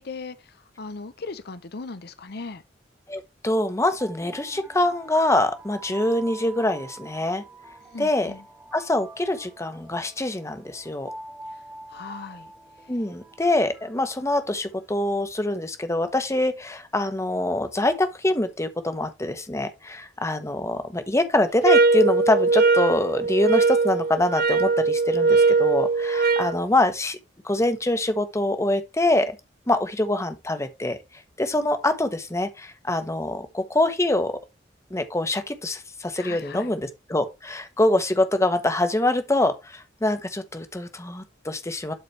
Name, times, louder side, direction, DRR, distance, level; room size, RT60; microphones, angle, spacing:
voice 1, 0.0-2.6 7.9-8.4 11.5-11.6 11.9-12.5 36.1-36.7, left 4 dB, 60° left, 0.7 m, -38 dB
voice 2, 3.1-7.4 8.0-8.3 8.7-11.1 12.9-27.2 27.4-29.4 29.7-31.0 31.4-34.4 34.9-41.9, left 1 dB, 15° left, 1.0 m, -24 dB
sound 1, 4.0-14.9, right 2 dB, 10° right, 1.4 m, -45 dB
sound 2, 21.6-26.6, right 3 dB, 55° right, 0.6 m, -20 dB
12.0 x 4.2 x 3.2 m
head